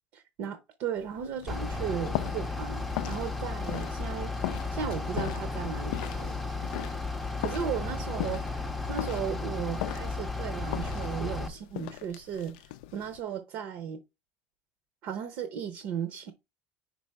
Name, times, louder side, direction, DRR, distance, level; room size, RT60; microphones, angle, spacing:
voice 1, 0.1-4.3 4.7-6.3 7.4-8.5 8.9-14.0 15.0-16.3, right 8 dB, 50° right, 0.7 m, -36 dB
sound 1, 1.0-13.2, left 17 dB, 90° left, 0.4 m, -40 dB
Bus / Idling, 1.5-11.5, left 3 dB, ahead, 0.6 m, -34 dB
5.3 x 3.9 x 4.5 m
cardioid pair, 175°, 5 cm